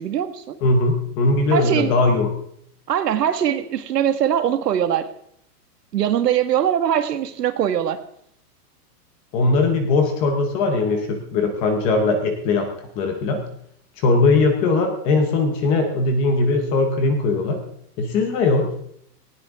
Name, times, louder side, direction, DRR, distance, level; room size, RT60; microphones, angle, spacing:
voice 1, 0.0-0.6 1.5-2.0 2.9-5.1 5.9-8.0, right 9 dB, 75° right, 9 dB, 1.8 m, -21 dB
voice 2, 0.6-2.3 9.3-12.7 13.0-13.4 14.0-17.6 18.0-18.7, left 3 dB, 10° left, 6 dB, 0.7 m, -20 dB
18.5 x 16.5 x 3.6 m, 0.70 s
supercardioid pair, 170°, 48 cm